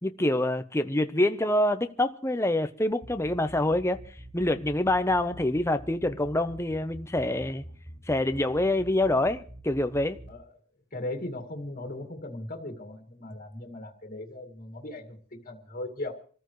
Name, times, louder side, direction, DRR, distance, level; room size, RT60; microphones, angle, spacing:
voice 1, 0.0-4.0 4.3-7.6 8.1-10.2, left 1 dB, 15° left, 0.8 m, -26 dB
sound 1, 2.9-10.3, equal, 5° right, 4.2 m, -45 dB
voice 2, 10.9-16.1, left 1 dB, 40° left, 2.2 m, -38 dB
27.5 x 14.0 x 3.2 m
head